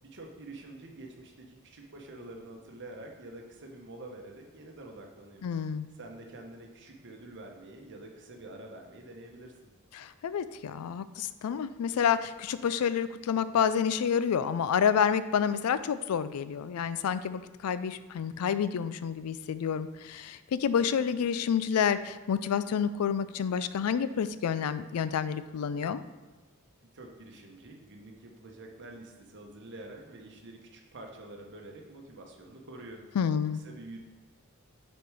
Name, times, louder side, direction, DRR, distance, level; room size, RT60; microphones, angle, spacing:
voice 1, 0.0-9.7 26.9-33.1 33.6-34.0, right 2 dB, 55° right, 2 dB, 1.0 m, -47 dB
voice 2, 5.4-5.9 9.9-26.0 33.2-33.6, left 7 dB, 90° left, 13 dB, 0.4 m, -29 dB
6.6 x 4.3 x 4.8 m, 1.2 s
head